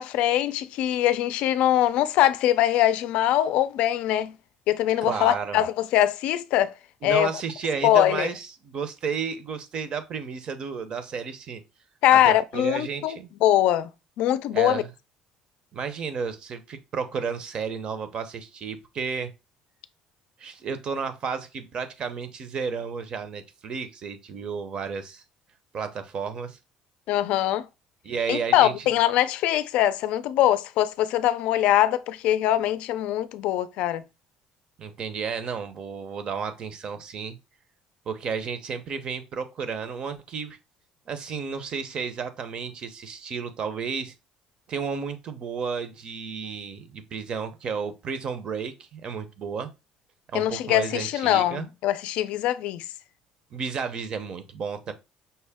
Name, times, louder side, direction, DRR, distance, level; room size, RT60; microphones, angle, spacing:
voice 1, 0.0-4.3 4.7-6.7 7.0-7.3 7.8-8.3 12.0-13.9 14.2-14.8 27.1-27.6 28.3-34.0 50.3-52.8, left 12 dB, 75° left, 0.4 m, -22 dB
voice 2, 5.0-5.6 7.0-11.6 12.1-13.3 14.5-14.9 15.7-19.3 20.4-25.2 25.7-26.6 28.0-28.9 34.8-37.4 38.1-40.6 41.1-44.1 44.7-49.7 50.3-51.6 53.5-54.9, right 6 dB, 45° right, 0.7 m, -32 dB
5.5 x 2.1 x 3.4 m
cardioid pair, 115°, 2 cm